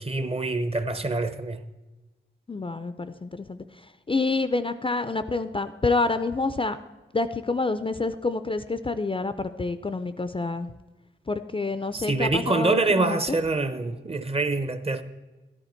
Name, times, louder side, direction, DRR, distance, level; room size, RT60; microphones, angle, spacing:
voice 1, 0.0-1.6 11.9-15.0, right 3 dB, 30° right, 0.7 m, -25 dB
voice 2, 2.5-3.6 4.1-6.8 7.1-10.7 11.3-13.2, left 3 dB, 25° left, 0.4 m, -27 dB
13.0 x 11.0 x 4.4 m
wide cardioid pair, 85°, 21 cm